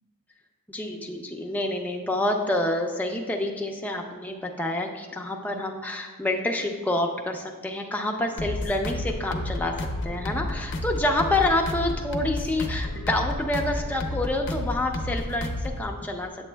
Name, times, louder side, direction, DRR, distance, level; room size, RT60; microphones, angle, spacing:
voice 1, 0.7-9.7 10.0-16.3, left 1 dB, 5° left, 1 dB, 0.5 m, -27 dB
sound 1, 8.4-15.9, left 1 dB, 55° left, 0.6 m, -31 dB
8.3 x 7.1 x 2.2 m, 1.3 s
head